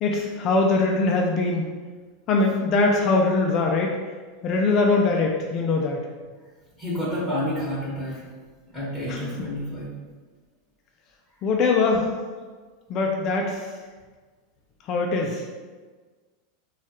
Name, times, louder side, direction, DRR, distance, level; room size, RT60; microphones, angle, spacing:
voice 1, 0.0-1.7 2.3-3.9 4.4-6.0 9.1-9.2 11.4-12.1 12.9-13.7 14.9-15.4, left 3 dB, 45° left, 0 dB, 0.3 m, -22 dB
voice 2, 6.8-8.2 8.7-9.9, left 1 dB, ahead, -10 dB, 1.1 m, -29 dB
3.1 x 2.3 x 2.9 m, 1.4 s
hypercardioid pair, 110°, 0 cm